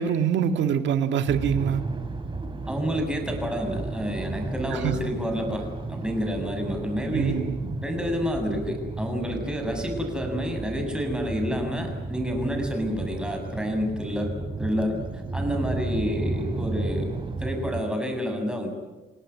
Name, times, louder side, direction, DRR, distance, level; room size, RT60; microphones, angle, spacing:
voice 1, 0.0-1.8 4.7-5.0 7.1-7.7, right 8 dB, 80° right, 8 dB, 1.9 m, -25 dB
sound 1, 1.3-17.8, right 3 dB, 25° right, 3.1 m, -33 dB
voice 2, 2.7-7.4 7.8-17.1 17.4-18.7, equal, 5° right, 3 dB, 7.3 m, -29 dB
28.5 x 18.5 x 9.8 m, 1.1 s
cardioid pair, 105°, 19 cm